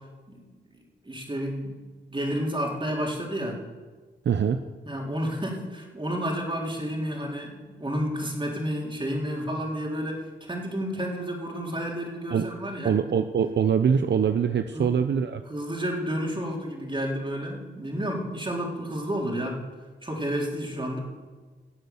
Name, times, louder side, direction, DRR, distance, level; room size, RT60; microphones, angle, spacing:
voice 1, 1.0-1.8 2.1-3.6 4.9-12.9 14.7-14.9 15.5-19.7 20.0-21.0, equal, 25° right, -1 dB, 3.7 m, -31 dB
voice 2, 4.3-4.6 12.3-12.5 12.8-15.4, right 7 dB, 60° right, 9 dB, 0.6 m, -23 dB
17.5 x 7.8 x 7.0 m, 1.4 s
cardioid pair, 55°, 20 cm